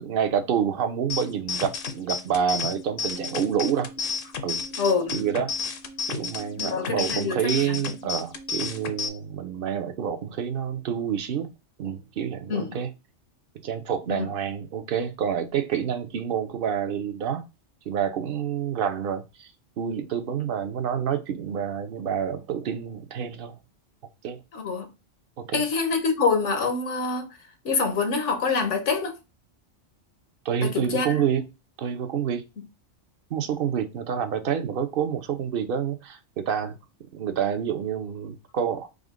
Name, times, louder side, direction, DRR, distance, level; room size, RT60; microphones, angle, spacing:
voice 1, 0.0-3.9 4.4-4.6 5.1-5.5 6.1-11.5 11.8-12.9 13.6-17.4 17.9-19.5 19.8-23.6 24.2-24.4 25.4-25.6 30.4-31.4 31.8-32.4 33.3-36.8 37.1-38.9, right 8 dB, 60° right, 0.7 m, -28 dB
sound 1, 1.1-9.1, left 5 dB, 60° left, 0.7 m, -32 dB
voice 2, 4.8-5.2 6.6-7.8 12.5-12.8 14.1-14.3 24.5-24.9 25.5-27.3 27.6-29.1 30.6-31.2, left 4 dB, 85° left, 1.3 m, -26 dB
4.9 x 2.1 x 3.6 m
omnidirectional pair, 1.2 m